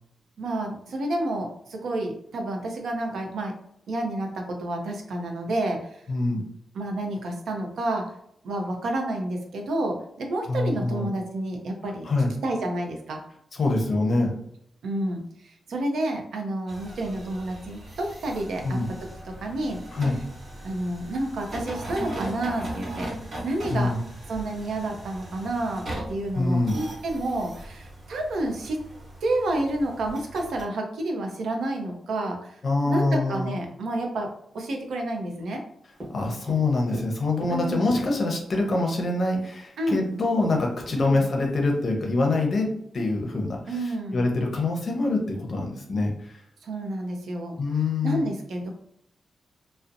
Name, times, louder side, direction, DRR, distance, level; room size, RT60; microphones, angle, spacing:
voice 1, 0.4-3.5 3.9-6.0 6.7-8.1 8.4-12.1 12.4-13.2 14.8-18.8 19.3-20.0 20.6-23.2 23.4-24.0 24.3-28.8 29.2-32.6 32.9-35.6 37.5-37.9 39.8-40.0 40.9-41.3 43.7-44.3 46.6-47.6 48.0-48.7, right 1 dB, 90° right, 2 dB, 0.5 m, -29 dB
voice 2, 6.1-6.4 10.5-11.1 12.0-12.3 13.5-14.4 18.6-18.9 19.9-20.2 23.7-24.0 26.3-26.8 32.6-33.6 36.1-46.4 47.6-48.3, left 2 dB, 45° left, 1 dB, 0.6 m, -25 dB
sound 1, 16.7-30.6, right 1 dB, 55° right, 1.0 m, -39 dB
Tap, 36.0-38.6 39.6-39.7 40.0-40.1 40.4-41.9, equal, 10° right, 0.9 m, -39 dB
2.6 x 2.0 x 2.4 m, 0.71 s
wide cardioid pair, 150°, 0 cm